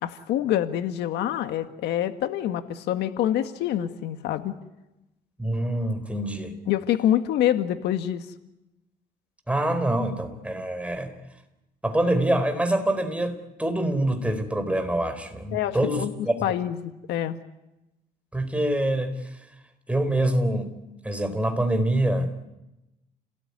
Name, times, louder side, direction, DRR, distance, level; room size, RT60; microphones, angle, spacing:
voice 1, 0.0-4.6 6.7-8.2 15.5-16.1 16.4-17.4, left 11 dB, 80° left, 9 dB, 1.8 m, -26 dB
voice 2, 5.4-6.5 9.5-11.1 11.8-16.5 18.3-19.1 19.9-20.7 21.0-22.3, right 1 dB, 5° right, 8 dB, 4.1 m, -25 dB
30.0 x 18.5 x 9.7 m, 0.97 s
cardioid pair, 110°, 17 cm